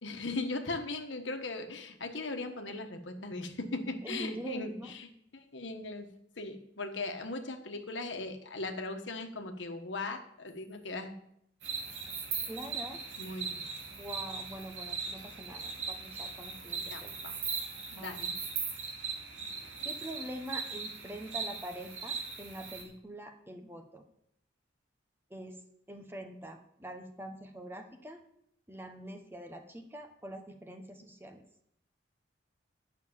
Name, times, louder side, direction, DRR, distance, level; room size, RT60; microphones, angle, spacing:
voice 1, 0.0-6.1 6.4-11.1 13.2-13.6 16.7-17.3 17.9-18.3, left 2 dB, 75° left, 5 dB, 1.3 m, -38 dB
voice 2, 4.0-4.9 12.5-13.0 14.0-17.1 18.0-18.2 19.8-24.0 25.3-25.6 25.9-28.2 28.7-31.4, right 1 dB, 10° right, 5 dB, 1.0 m, -44 dB
sound 1, 11.6-22.8, right 5 dB, 85° right, 2.8 m, -39 dB
10.5 x 6.6 x 7.2 m, 0.74 s
head